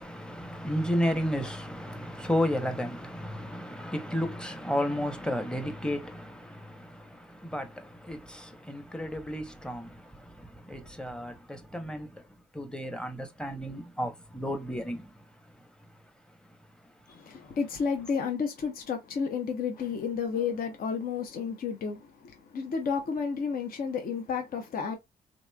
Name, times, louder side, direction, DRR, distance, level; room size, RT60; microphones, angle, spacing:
voice 1, 0.0-12.3 12.5-15.6, equal, 5° left, 0.9 m, -33 dB
voice 2, 17.1-25.0, left 6 dB, 55° left, 0.8 m, -31 dB
3.0 x 2.6 x 2.3 m
supercardioid pair, 60°, 18 cm